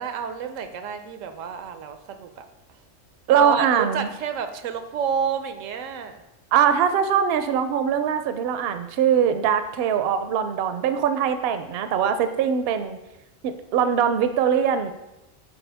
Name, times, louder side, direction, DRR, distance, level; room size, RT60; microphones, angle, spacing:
voice 1, 0.0-2.4 3.3-6.2, right 7 dB, 90° right, 8 dB, 1.0 m, -29 dB
voice 2, 3.3-4.1 6.5-13.0 13.4-14.9, right 8 dB, 65° right, 9 dB, 0.7 m, -22 dB
7.8 x 4.4 x 3.4 m, 0.96 s
omnidirectional pair, 1.3 m